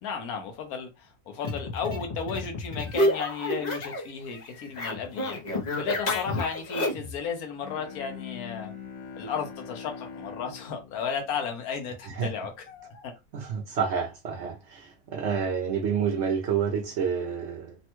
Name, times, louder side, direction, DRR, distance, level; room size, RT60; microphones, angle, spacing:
voice 1, 0.0-5.4 5.8-8.8 9.1-13.1, left 6 dB, 75° left, 1.2 m, -34 dB
sound 1, 1.4-4.1 4.4-7.1, left 1 dB, 40° left, 0.6 m, -30 dB
Bowed string instrument, 7.5-12.4, left 6 dB, 60° left, 1.0 m, -43 dB
voice 2, 13.3-17.8, right 7 dB, 65° right, 0.8 m, -29 dB
3.3 x 2.2 x 2.9 m
omnidirectional pair, 1.6 m